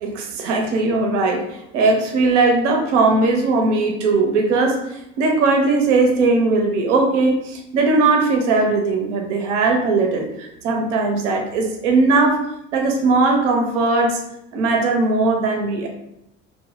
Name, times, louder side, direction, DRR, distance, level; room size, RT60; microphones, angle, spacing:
voice 1, 0.0-12.5 12.7-14.2 14.5-15.9, right 3 dB, 70° right, 2 dB, 0.6 m, -19 dB
2.8 x 2.1 x 3.1 m, 0.82 s
figure-of-eight pair, 55°, 38 cm